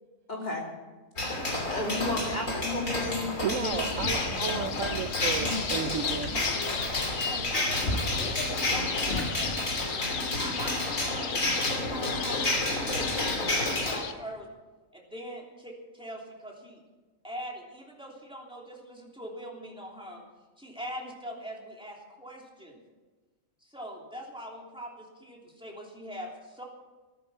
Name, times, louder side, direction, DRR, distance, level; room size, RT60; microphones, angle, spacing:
voice 1, 0.3-0.7 1.7-3.8 4.6-4.7 5.4-5.6, left 2 dB, 35° left, 0 dB, 3.1 m, -33 dB
sound 1, 1.2-14.0, left 2 dB, 85° left, 3.3 m, -30 dB
voice 2, 3.4-6.4, right 7 dB, 80° right, 11 dB, 1.2 m, -33 dB
sound 2, 3.5-9.9, left 2 dB, 50° left, 2.3 m, -37 dB
sound 3, 3.6-14.1, left 8 dB, 65° left, 1.1 m, -36 dB
voice 3, 7.3-9.9 10.4-14.5 14.9-16.8 17.2-20.2 20.6-22.8 23.6-26.6, equal, 5° right, -2 dB, 3.1 m, -43 dB
14.5 x 14.5 x 5.8 m, 1.3 s
omnidirectional pair, 1.3 m